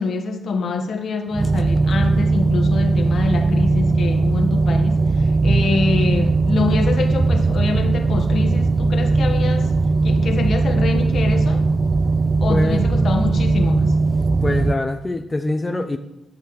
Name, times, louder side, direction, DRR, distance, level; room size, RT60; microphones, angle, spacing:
voice 1, 0.0-9.7 10.0-11.6 12.4-14.0, left 4 dB, 65° left, 5 dB, 1.1 m, -25 dB
sound 1, 1.3-14.7, right 3 dB, 30° right, 0.4 m, -18 dB
voice 2, 12.5-12.8 14.4-16.0, left 2 dB, 25° left, 6 dB, 0.5 m, -24 dB
10.5 x 6.5 x 3.1 m, 0.89 s
cardioid pair, 65°, 0 cm